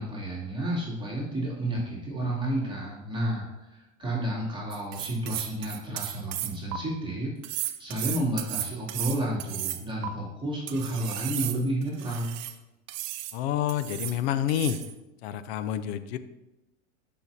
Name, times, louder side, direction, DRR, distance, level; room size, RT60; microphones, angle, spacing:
voice 1, 0.0-12.4, right 1 dB, 10° right, -6 dB, 2.6 m, -31 dB
sound 1, 4.7-6.8 7.4-10.1 10.7-12.5 12.9-13.4 13.7-14.2 14.5-14.9, right 13 dB, 45° right, 0.7 m, -34 dB
voice 2, 13.3-14.8 15.2-16.2, left 11 dB, 50° left, 12 dB, 0.7 m, -28 dB
11.5 x 5.7 x 2.7 m, 1.0 s
hypercardioid pair, 95°, 40 cm